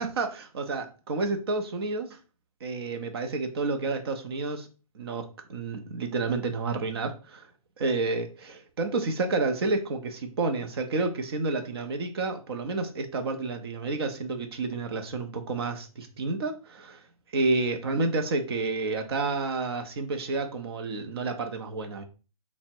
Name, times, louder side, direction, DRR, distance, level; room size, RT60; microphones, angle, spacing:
voice 1, 0.0-2.2 2.6-4.7 4.9-7.5 7.8-17.0 17.3-22.0, right 3 dB, 45° right, 6 dB, 0.6 m, -30 dB
3.4 x 2.1 x 4.3 m, 0.34 s
hypercardioid pair, 165°, 19 cm